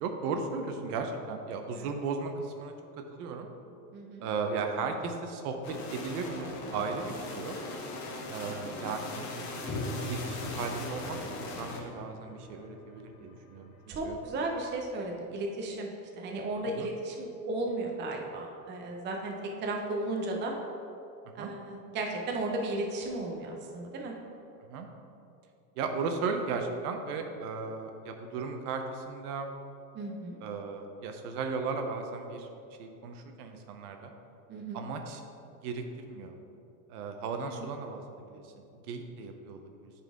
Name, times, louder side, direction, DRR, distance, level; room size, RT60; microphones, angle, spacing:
voice 1, 0.0-2.7 3.1-3.5 4.2-7.6 8.3-13.7 14.0-14.2 16.7-16.9 21.4-21.5 24.6-24.9 25.8-29.5 30.4-32.5 32.8-34.1 34.7-35.2 35.6-36.3 36.9-38.5 38.8-39.9, right 4 dB, 65° right, 5 dB, 0.9 m, -36 dB
voice 2, 3.9-4.2 8.5-8.9 13.9-15.9 16.1-19.3 19.6-20.5 21.3-24.1 29.9-30.4 34.5-34.8 37.4-37.7, right 2 dB, 25° right, 1 dB, 0.7 m, -35 dB
sound 1, 5.6-11.8, left 2 dB, 35° left, 1.0 m, -40 dB
sound 2, 9.7-14.3, left 1 dB, 20° left, 0.4 m, -41 dB
8.9 x 4.2 x 3.6 m, 2.7 s
supercardioid pair, 130°, 48 cm